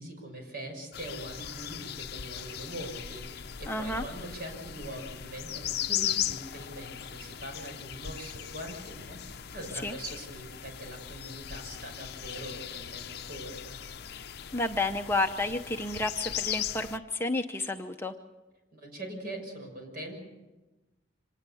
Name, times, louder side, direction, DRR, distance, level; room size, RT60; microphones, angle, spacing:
voice 1, 0.0-13.8 18.7-20.2, right 1 dB, 50° right, 3 dB, 6.4 m, -42 dB
sound 1, 0.9-17.0, left 10 dB, 55° left, 0.6 m, -38 dB
voice 2, 3.7-4.0 9.8-9.9 14.5-18.1, left 2 dB, 10° left, 4 dB, 0.8 m, -31 dB
26.0 x 19.0 x 7.1 m, 1.1 s
head